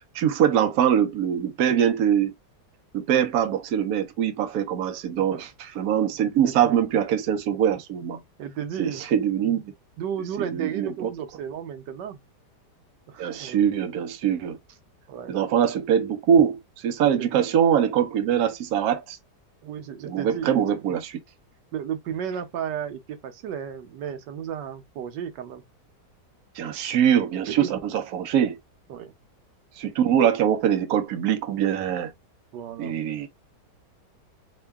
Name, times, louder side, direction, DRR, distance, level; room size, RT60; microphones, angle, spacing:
voice 1, 0.1-2.3 2.9-8.2 8.8-9.7 10.5-11.1 13.2-14.6 15.3-19.2 20.0-21.2 26.6-28.6 29.8-32.1 32.8-33.3, right 9 dB, 70° right, 1.1 m, -23 dB
voice 2, 8.4-9.0 10.0-12.2 13.1-13.7 15.1-15.4 17.2-17.5 19.6-20.9 21.7-25.6 27.5-27.7 28.9-29.1 32.5-32.9, right 8 dB, 85° right, 1.4 m, -33 dB
3.7 x 2.2 x 3.3 m
omnidirectional pair, 1.8 m